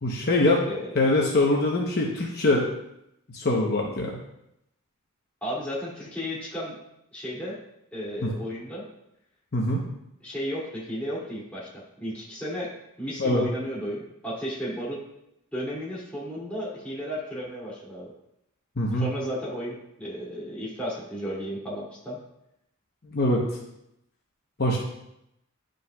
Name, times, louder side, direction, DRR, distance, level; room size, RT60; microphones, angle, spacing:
voice 1, 0.0-0.6 0.9-2.7 3.3-4.2 8.2-8.3 9.5-9.8 13.2-13.4 18.8-19.1 23.1-23.4 24.6-24.8, left 2 dB, 50° left, -1 dB, 0.9 m, -23 dB
voice 2, 0.7-1.1 5.4-6.8 7.1-7.6 7.9-8.9 10.2-15.0 15.5-18.1 18.9-22.2, equal, 5° left, -8 dB, 2.6 m, -34 dB
11.5 x 5.2 x 2.3 m, 0.82 s
head